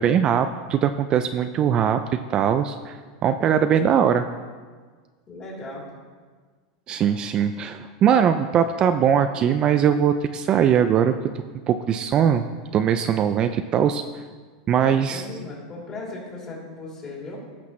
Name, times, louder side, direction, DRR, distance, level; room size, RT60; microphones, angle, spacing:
voice 1, 0.0-2.0 2.3-3.0 3.2-4.2 6.9-11.1 11.7-12.4 12.7-14.0 14.7-15.2, right 8 dB, 30° right, 9 dB, 0.3 m, -20 dB
voice 2, 5.3-5.9 14.8-17.4, left 2 dB, 25° left, -4 dB, 3.3 m, -37 dB
17.5 x 5.9 x 3.1 m, 1.5 s
supercardioid pair, 145°, 3 cm